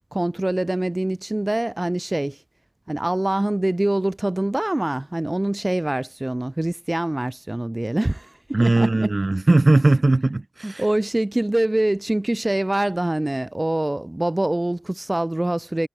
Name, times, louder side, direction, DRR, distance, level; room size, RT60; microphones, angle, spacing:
voice 1, 0.1-2.4 2.9-9.1 10.6-15.9, right 1 dB, 30° right, 2.0 m, -24 dB
voice 2, 8.5-10.8, right 2 dB, 55° right, 0.9 m, -18 dB
wide cardioid pair, 60°, 0 cm